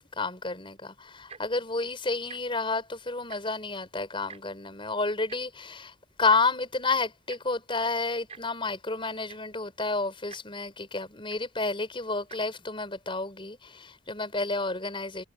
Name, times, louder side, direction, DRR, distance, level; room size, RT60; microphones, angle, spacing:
voice 1, 0.0-5.9 6.2-15.2, left 3 dB, 30° left, 5.0 m, -30 dB
Tick-tock, 1.2-1.6 2.2-2.4 2.7-2.8 3.1-3.7 4.3-4.4 5.3-5.4 6.3-6.4 7.3-7.4 8.3-8.4 9.0-9.1 9.3-9.6 10.3-10.4 11.3-11.4 12.2-12.4 13.1-13.2, right 5 dB, 35° right, 5.7 m, -45 dB
head